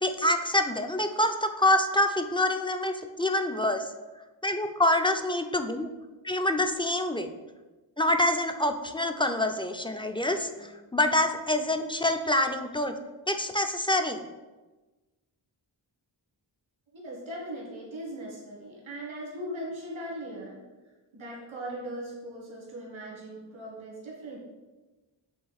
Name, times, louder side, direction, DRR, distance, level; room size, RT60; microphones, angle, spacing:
voice 1, 0.0-3.9 4.4-5.9 6.2-7.3 8.0-12.9 13.3-14.2, left 1 dB, 10° left, 6 dB, 0.4 m, -26 dB
voice 2, 16.9-20.6 21.1-24.4, right 1 dB, 85° right, -4 dB, 1.5 m, -39 dB
7.6 x 3.3 x 4.1 m, 1.2 s
wide cardioid pair, 60°, 46 cm